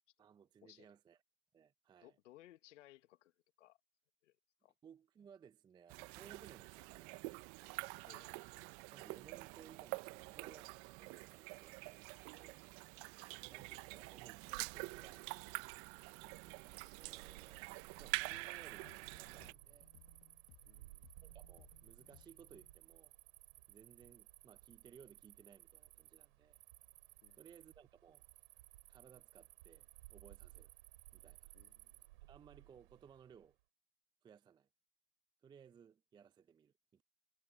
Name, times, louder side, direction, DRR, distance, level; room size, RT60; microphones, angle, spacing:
voice 1, 0.2-1.2 1.5-2.2 4.8-7.4 8.9-12.6 12.9-15.3 16.2-19.9 21.2-23.1 23.7-26.6 27.3-28.2 28.9-30.7 31.1-31.5 32.2-33.6 34.2-34.7 35.4-37.0, right 7 dB, 10° right, 0.6 m, -62 dB
voice 2, 2.0-3.3 3.6-3.8 4.2-4.3 4.6-4.7 8.1-8.4 13.2-13.4 20.6-21.1 27.2-27.4 31.5-32.0, left 15 dB, 65° left, 1.6 m, -63 dB
sound 1, 5.9-19.5, right 26 dB, 35° right, 0.8 m, -47 dB
Cricket, 14.5-33.4, right 19 dB, 55° right, 4.6 m, -60 dB
sound 2, 18.3-22.8, left 24 dB, 45° left, 1.7 m, -66 dB
hypercardioid pair, 115°, 40 cm